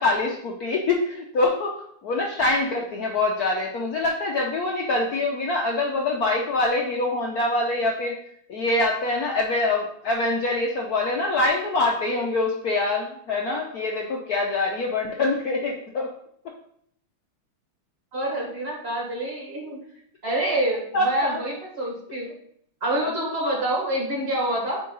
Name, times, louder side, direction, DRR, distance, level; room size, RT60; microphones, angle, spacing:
voice 1, 0.0-1.8 2.0-8.1 8.5-16.1 20.9-21.4 23.0-23.1, left 2 dB, 65° left, -1 dB, 1.0 m, -24 dB
voice 2, 18.1-19.8 20.2-22.3 22.8-24.8, right 1 dB, 30° right, -1 dB, 1.8 m, -27 dB
8.7 x 3.7 x 3.9 m, 0.69 s
omnidirectional pair, 2.3 m